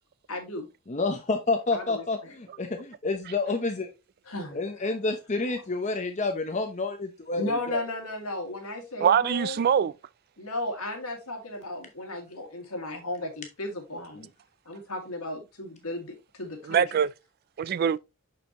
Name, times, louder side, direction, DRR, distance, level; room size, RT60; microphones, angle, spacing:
voice 1, 0.3-0.7 1.7-2.0 4.3-4.6 7.4-9.6 10.4-14.3 14.7-17.0, left 1 dB, 75° left, 2.0 m, -35 dB
voice 2, 0.9-3.9 4.5-7.8 14.2-14.3, left 3 dB, 35° left, 0.8 m, -29 dB
voice 3, 9.0-9.9 16.7-17.1 17.6-18.0, right 8 dB, 45° right, 0.3 m, -23 dB
6.5 x 5.7 x 2.9 m
head